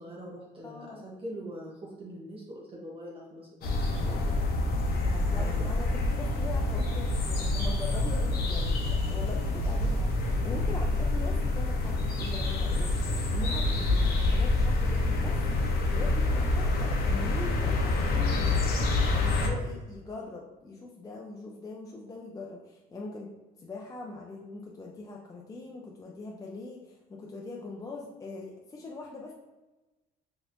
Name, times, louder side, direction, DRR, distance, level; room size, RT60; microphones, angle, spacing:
voice 1, 0.0-4.5 4.9-5.7 7.6-7.8, equal, 35° right, -4 dB, 0.8 m, -44 dB
voice 2, 0.6-1.0 4.1-4.3 5.3-15.4 15.9-18.6 19.2-23.3 23.6-29.3, left 3 dB, 20° left, -1 dB, 0.4 m, -42 dB
sound 1, 3.6-19.5, left 2 dB, 65° left, 0.6 m, -27 dB
3.9 x 2.8 x 2.5 m, 1.1 s
cardioid pair, 110°, 17 cm